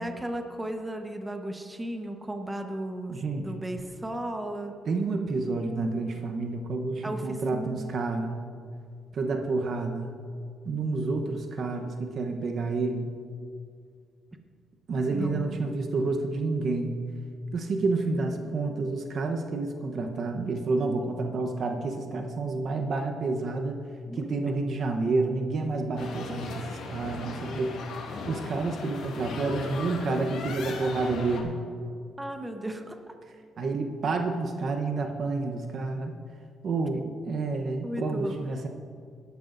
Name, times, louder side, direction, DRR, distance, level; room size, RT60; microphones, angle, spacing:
voice 1, 0.0-4.7 7.0-7.9 15.1-15.6 24.1-24.2 32.2-33.1 37.8-38.4, right 1 dB, 15° right, 5 dB, 1.1 m, -35 dB
voice 2, 3.1-3.5 4.8-8.4 9.1-10.1 10.6-13.1 14.9-17.0 17.5-23.8 24.1-27.9 28.3-31.6 33.6-36.1 36.6-38.7, right 3 dB, 55° right, 4 dB, 1.0 m, -29 dB
sound 1, 26.0-31.4, left 4 dB, 75° left, 1.7 m, -37 dB
18.0 x 11.5 x 2.7 m, 2.2 s
cardioid pair, 90°, 0 cm